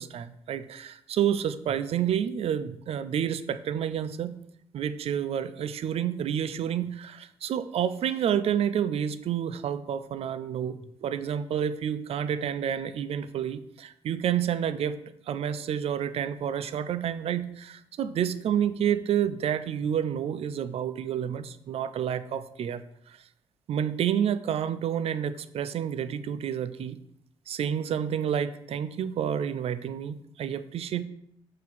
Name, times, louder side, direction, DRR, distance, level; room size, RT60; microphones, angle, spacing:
voice 1, 0.0-4.4 4.7-15.0 15.3-22.8 23.1-23.2 23.7-27.0 27.5-31.0, right 9 dB, 70° right, 13 dB, 0.5 m, -29 dB
7.4 x 2.8 x 5.9 m, 0.75 s
cardioid pair, 70°, 11 cm